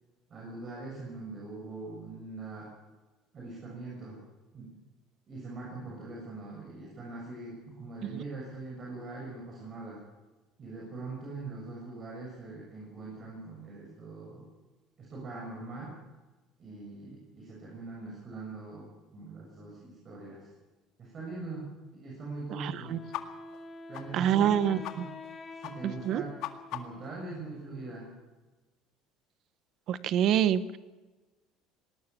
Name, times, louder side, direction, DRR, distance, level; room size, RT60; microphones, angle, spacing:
voice 1, 0.3-2.7 3.3-4.2 4.5-4.7 5.3-10.0 10.6-14.5 15.0-16.0 16.6-20.5 21.0-23.0 23.9-25.1 25.5-26.4 26.7-28.1, right 3 dB, 35° right, -3 dB, 6.9 m, -42 dB
voice 2, 22.6-23.0 24.1-25.1 25.8-26.2 29.9-30.8, right 10 dB, 55° right, 14 dB, 1.1 m, -27 dB
Wind instrument woodwind instrument, 22.8-27.6, left 3 dB, 25° left, 2.6 m, -47 dB
sound 1, 23.1-23.2 23.5-23.6 23.9-24.1 24.4-24.5 24.8-25.0 25.2-25.3 25.6-25.7 26.0-27.1, left 14 dB, 70° left, 2.0 m, -39 dB
20.0 x 19.0 x 7.0 m, 1.2 s
cardioid pair, 130°, 0 cm